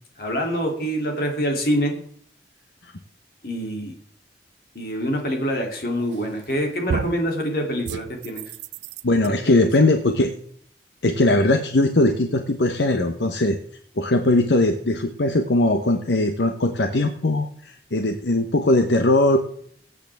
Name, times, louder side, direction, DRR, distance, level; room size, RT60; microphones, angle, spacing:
voice 1, 0.2-2.0 3.4-3.9 4.7-8.4 9.2-9.4, equal, 55° left, 1 dB, 2.9 m, -25 dB
sound 1, 6.1-6.5 6.9-7.3 7.8-9.3, right 6 dB, 80° right, 0.4 m, -31 dB
voice 2, 9.0-10.3 11.0-13.6 14.0-19.4, left 2 dB, 75° left, 6 dB, 1.0 m, -20 dB
22.5 x 8.4 x 3.5 m, 0.64 s
head